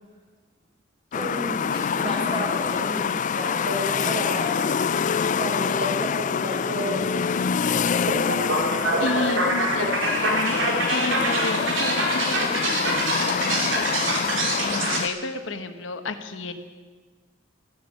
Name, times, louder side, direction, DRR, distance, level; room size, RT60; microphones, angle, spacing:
sound 1, 1.1-15.1, left 6 dB, 40° left, 0.4 m, -26 dB
voice 1, 1.1-4.6 5.3-7.4 8.7-9.2, equal, 25° right, -3 dB, 5.9 m, -31 dB
sound 2, 8.1-15.0, right 2 dB, 70° right, 3.0 m, -25 dB
voice 2, 8.8-16.5, left 3 dB, 75° left, 7 dB, 1.2 m, -32 dB
14.0 x 11.5 x 8.5 m, 1.4 s
head